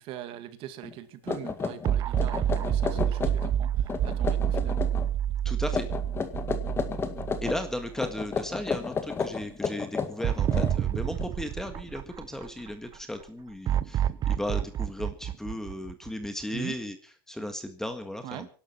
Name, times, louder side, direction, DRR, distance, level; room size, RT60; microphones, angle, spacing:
voice 1, 0.0-4.8 16.5-16.7 18.2-18.5, right 13 dB, 50° right, 10 dB, 2.2 m, -41 dB
sound 1, 0.8-0.9 1.3-3.6 3.8-5.1 5.7-7.6 8.0-11.2, left 5 dB, 20° left, 1.9 m, -32 dB
sound 2, 1.8-8.2 8.6-8.7 10.2-12.7 13.7-16.4, right 10 dB, 35° right, 0.7 m, -28 dB
voice 2, 5.4-5.9 7.4-17.0 17.3-18.5, left 1 dB, 5° left, 7 dB, 1.7 m, -35 dB
24.0 x 12.0 x 4.5 m, 0.41 s
supercardioid pair, 135°, 12 cm